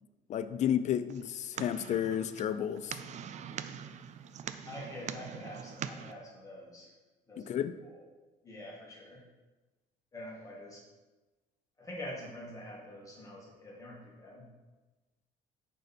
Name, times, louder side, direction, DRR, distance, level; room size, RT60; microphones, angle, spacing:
voice 1, 0.3-3.0 7.4-7.8, left 9 dB, 45° left, 11 dB, 0.4 m, -32 dB
sound 1, 1.1-6.1, right 8 dB, 45° right, 0.4 m, -43 dB
voice 2, 4.6-6.9 7.3-7.9 8.4-9.2 10.1-10.8 11.8-14.5, left 1 dB, 20° left, -4 dB, 2.0 m, -46 dB
6.3 x 4.2 x 4.3 m, 1.2 s
cardioid pair, 110°, 17 cm